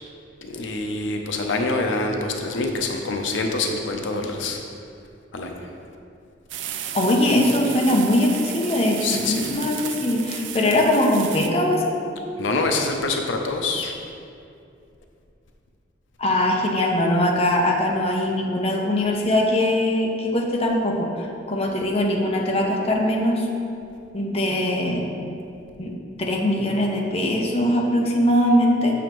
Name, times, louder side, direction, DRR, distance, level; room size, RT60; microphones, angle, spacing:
voice 1, 0.4-4.6 5.3-5.5 9.0-9.6 12.4-13.9, left 3 dB, 80° left, 3 dB, 0.6 m, -25 dB
sound 1, 6.5-11.5, right 9 dB, 75° right, 0.4 m, -34 dB
voice 2, 6.9-11.8 16.2-23.5 24.1-25.0 25.8-29.0, left 1 dB, 30° left, 0 dB, 0.7 m, -21 dB
7.1 x 6.8 x 3.0 m, 2.5 s
head